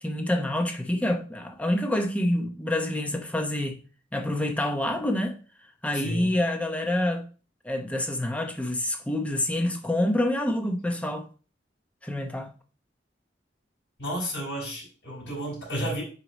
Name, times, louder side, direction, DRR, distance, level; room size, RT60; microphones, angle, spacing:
voice 1, 0.0-3.8 4.1-5.4 5.8-7.2 7.6-11.3 12.0-12.5, left 1 dB, 10° left, 0.8 m, -27 dB
voice 2, 14.0-16.0, equal, 70° left, 4.1 m, -32 dB
7.9 x 4.6 x 4.1 m
head